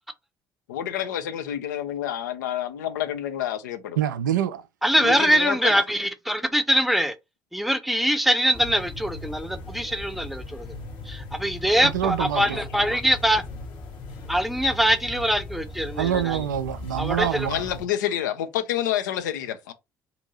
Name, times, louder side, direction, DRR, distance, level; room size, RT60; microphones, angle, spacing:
voice 1, 0.7-4.0 5.0-5.7 17.5-19.7, left 11 dB, 75° left, 0.5 m, -28 dB
voice 2, 4.0-4.6 11.8-12.6 16.0-17.6, right 10 dB, 80° right, 0.4 m, -26 dB
voice 3, 4.8-7.1 7.5-10.7 11.0-13.4 14.3-16.4 17.0-17.5, equal, ahead, 0.6 m, -23 dB
sound 1, 8.5-17.9, left 2 dB, 55° left, 0.9 m, -38 dB
2.8 x 2.6 x 4.0 m
figure-of-eight pair, 50°, 10 cm